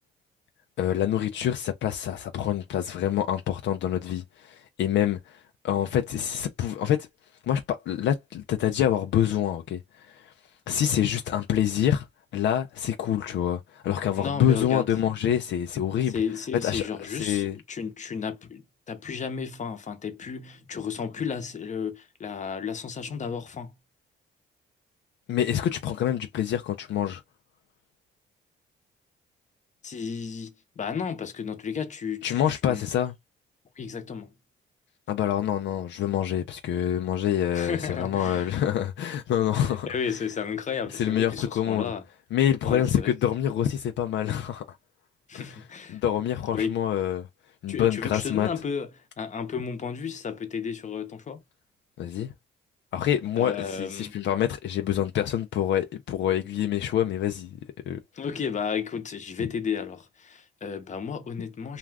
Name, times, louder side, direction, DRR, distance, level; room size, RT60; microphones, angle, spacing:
voice 1, 0.8-7.1 7.4-10.3 10.7-12.1 12.3-16.1 16.6-17.6 25.3-27.2 32.2-33.1 35.1-39.9 40.9-41.9 42.3-44.6 45.3-45.6 45.9-47.3 47.6-48.5 52.0-52.3 52.9-57.6 57.9-58.0 59.4-59.5, left 10 dB, 70° left, 0.4 m, -26 dB
voice 2, 14.2-14.9 16.1-23.8 29.8-32.9 33.8-34.3 37.5-38.5 39.6-42.0 42.6-43.1 45.3-46.0 46.5-46.8 47.7-48.9 49.2-51.4 53.4-54.2 58.1-61.8, left 6 dB, 35° left, 0.8 m, -33 dB
2.4 x 2.4 x 3.3 m
cardioid pair, 90°, 20 cm